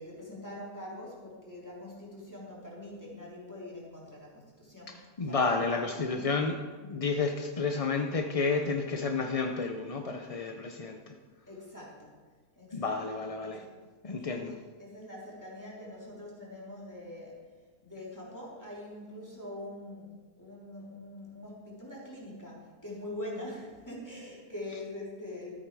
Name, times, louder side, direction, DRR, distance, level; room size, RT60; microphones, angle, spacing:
voice 1, 0.0-6.2 6.8-6.9 11.5-12.1 12.6-13.7 14.3-17.4 17.8-20.1 20.4-25.6, left 1 dB, 10° left, -5 dB, 3.2 m, -44 dB
voice 2, 5.2-6.6 6.9-11.1 12.7-13.6 14.0-14.6, left 4 dB, 45° left, 4 dB, 0.4 m, -31 dB
13.5 x 8.7 x 4.7 m, 1.4 s
omnidirectional pair, 1.5 m